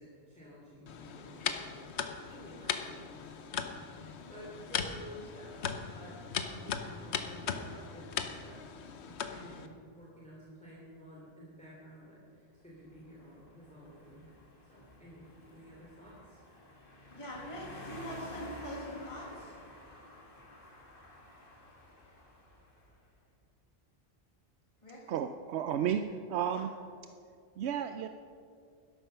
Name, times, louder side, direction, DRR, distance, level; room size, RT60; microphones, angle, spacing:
voice 1, 0.0-14.3 14.7-16.4 17.5-17.9, equal, 5° left, -6 dB, 2.8 m, -52 dB
sound 1, 0.9-9.7, left 6 dB, 80° left, 1.1 m, -39 dB
sound 2, 12.7-23.0, left 2 dB, 55° left, 2.1 m, -52 dB
voice 2, 17.1-19.5 24.8-25.0 26.5-26.6, equal, 30° left, -3 dB, 2.1 m, -43 dB
voice 3, 25.1-26.7 27.6-28.1, right 9 dB, 80° right, 8 dB, 0.8 m, -32 dB
12.0 x 12.0 x 5.6 m, 2.3 s
omnidirectional pair, 1.1 m